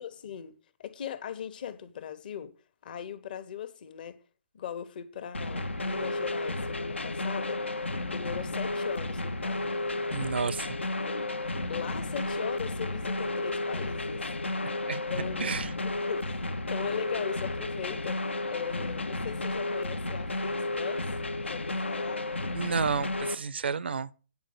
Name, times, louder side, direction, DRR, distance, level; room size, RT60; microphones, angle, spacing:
voice 1, 0.0-2.6 2.8-4.2 4.5-7.8 8.1-9.8 11.0-11.3 11.7-14.3 15.1-15.6 15.8-21.1 21.4-22.2, left 9 dB, 50° left, 1.2 m, -39 dB
sound 1, 5.3-23.3, left 2 dB, 80° left, 1.0 m, -32 dB
voice 2, 10.1-10.8 14.9-15.0 15.4-15.7 22.5-24.1, right 5 dB, 65° right, 0.6 m, -31 dB
9.4 x 4.9 x 7.8 m
figure-of-eight pair, 130°, 6 cm